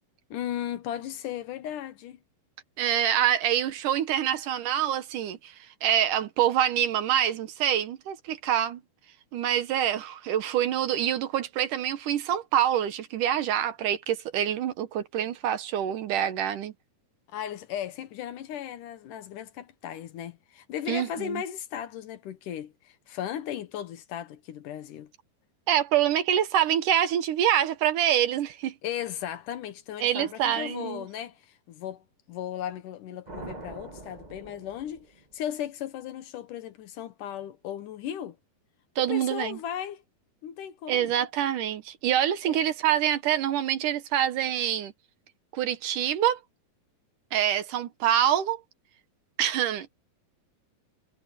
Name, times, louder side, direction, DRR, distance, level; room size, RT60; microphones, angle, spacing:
voice 1, 0.3-2.2 17.3-25.1 28.8-35.1 35.3-38.4 39.0-40.0 40.4-41.1 42.5-42.6, left 10 dB, 70° left, 2.5 m, -36 dB
voice 2, 2.8-5.6 5.8-8.8 9.3-16.7 20.9-21.4 25.7-28.7 30.0-31.1 39.0-39.6 40.9-44.9 45.5-46.4 47.3-48.6 49.4-49.9, right 10 dB, 70° right, 2.5 m, -26 dB
sound 1, 33.3-35.5, right 2 dB, 45° right, 0.5 m, -43 dB
omnidirectional pair, 4.1 m